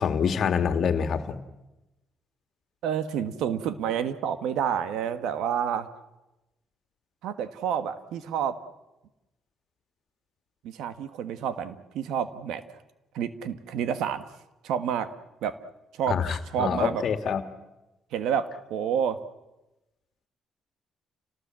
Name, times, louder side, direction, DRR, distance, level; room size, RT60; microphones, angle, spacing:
voice 1, 0.0-1.4 16.1-17.4, left 7 dB, 60° left, 9 dB, 1.8 m, -26 dB
voice 2, 2.8-5.9 7.2-8.6 10.6-12.6 13.1-14.2 14.6-15.1 15.4-15.5 15.9-17.0 18.1-19.2, right 8 dB, 90° right, 12 dB, 1.4 m, -29 dB
29.0 x 18.5 x 7.6 m, 1.0 s
cardioid pair, 90°, 0 cm